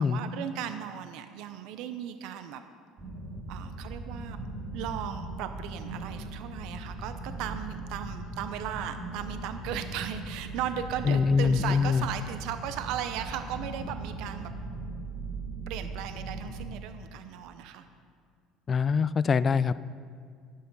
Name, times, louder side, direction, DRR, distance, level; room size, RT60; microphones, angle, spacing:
voice 1, 0.0-2.6 3.5-4.4 4.7-14.5 15.7-17.9, right 9 dB, 70° right, 9 dB, 0.7 m, -36 dB
sound 1, 3.0-16.7, right 2 dB, 30° right, 2.4 m, -39 dB
voice 2, 11.1-12.0 18.7-19.8, left 5 dB, 25° left, 16 dB, 0.3 m, -24 dB
11.5 x 10.5 x 5.4 m, 2.1 s
cardioid pair, 145°, 0 cm